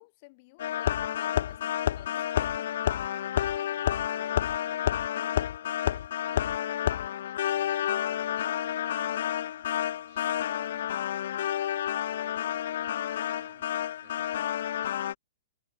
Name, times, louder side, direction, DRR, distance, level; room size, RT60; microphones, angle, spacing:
voice 1, 0.0-2.9, left 26 dB, 45° left, 6.5 m, -53 dB
sound 1, 0.6-15.1, left 11 dB, 70° left, 0.5 m, -30 dB
voice 2, 2.8-9.3 10.1-11.5 12.1-15.0, right 13 dB, 60° right, 4.6 m, -60 dB
hypercardioid pair, 135°, 0 cm